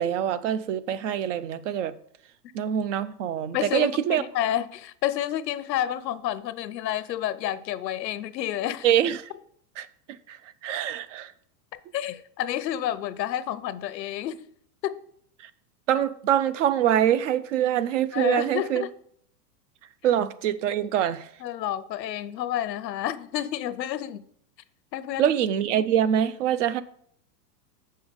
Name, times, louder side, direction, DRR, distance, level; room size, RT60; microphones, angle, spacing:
voice 1, 0.0-1.9 2.5-4.2 8.8-9.3 9.8-9.9 10.3-11.3 15.4-15.5 15.9-18.9 20.0-21.3 25.2-26.8, right 10 dB, 50° right, 0.5 m, -24 dB
voice 2, 3.5-8.9 11.9-14.4 14.8-15.0 18.1-18.9 21.4-24.2 24.9-25.3, left 12 dB, 85° left, 0.7 m, -29 dB
7.1 x 5.6 x 5.0 m
supercardioid pair, 145°, 49 cm